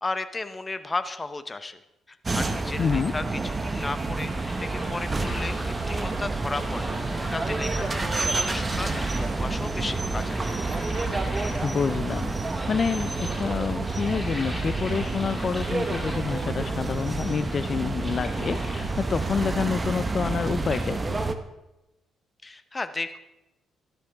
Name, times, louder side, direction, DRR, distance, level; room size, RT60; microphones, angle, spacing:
voice 1, 0.0-1.8 2.1-6.9 7.3-8.9 9.2-10.6 22.4-23.2, left 3 dB, 20° left, 11 dB, 0.8 m, -34 dB
sound 1, 2.2-21.4, right 3 dB, 25° right, 0.9 m, -29 dB
voice 2, 2.8-3.1 11.6-21.2, left 6 dB, 45° left, 11 dB, 0.4 m, -28 dB
sound 2, 3.7-20.9, equal, 5° right, 2.8 m, -41 dB
14.5 x 11.5 x 3.5 m, 0.95 s
cardioid pair, 90°, 0 cm